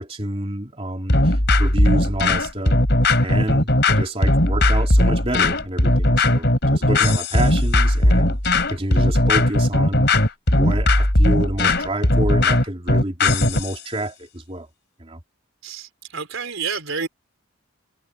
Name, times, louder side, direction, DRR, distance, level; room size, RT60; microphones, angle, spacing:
voice 1, 0.0-2.8 3.2-10.1 10.5-14.7 15.0-15.2, right 1 dB, 30° right, 3.1 m, -28 dB
sound 1, 1.1-13.7, left 1 dB, 55° left, 4.5 m, -18 dB
voice 2, 15.6-17.1, right 5 dB, 75° right, 3.7 m, -29 dB
head